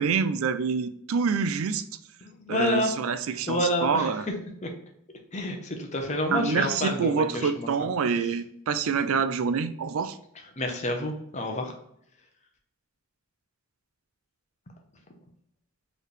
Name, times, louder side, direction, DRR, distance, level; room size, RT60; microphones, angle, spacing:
voice 1, 0.0-1.8 2.5-4.2 6.3-10.2, right 5 dB, 80° right, 12 dB, 0.4 m, -26 dB
voice 2, 2.2-2.9 3.5-4.1 4.6-4.7 5.3-7.7 10.6-11.7, left 1 dB, 35° left, 4 dB, 0.8 m, -28 dB
4.6 x 3.3 x 3.1 m, 0.73 s
head